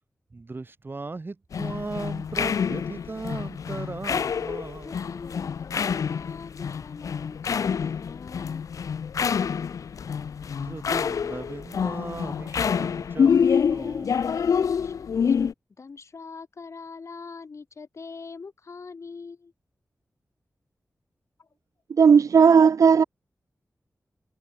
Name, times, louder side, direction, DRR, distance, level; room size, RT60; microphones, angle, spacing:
voice 1, 0.3-5.1 10.5-14.4, right 3 dB, 40° right, 7.6 m, -37 dB
sound 1, 1.5-15.5, left 6 dB, 90° left, 0.5 m, -27 dB
voice 2, 4.8-8.7 14.8-15.5 15.8-19.5 21.4-21.5, left 4 dB, 60° left, 5.0 m, -43 dB
voice 3, 22.0-23.0, right 6 dB, 80° right, 0.5 m, -15 dB
wide cardioid pair, 105°, 5 cm